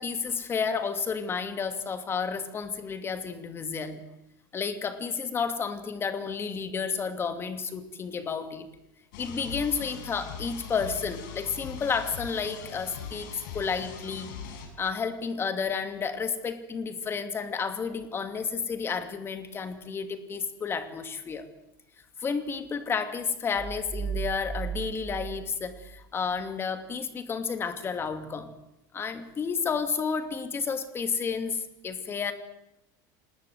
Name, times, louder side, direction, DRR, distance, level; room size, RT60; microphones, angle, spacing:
voice 1, 0.0-4.0 4.5-8.7 9.2-14.3 14.8-21.5 22.2-28.5 28.9-32.3, left 5 dB, 20° left, 9 dB, 2.5 m, -31 dB
sound 1, 9.1-14.7, left 6 dB, 80° left, 6.4 m, -41 dB
sound 2, 23.5-26.5, right 7 dB, 10° right, 6.6 m, -36 dB
26.5 x 20.0 x 7.9 m, 0.88 s
supercardioid pair, 140°, 11 cm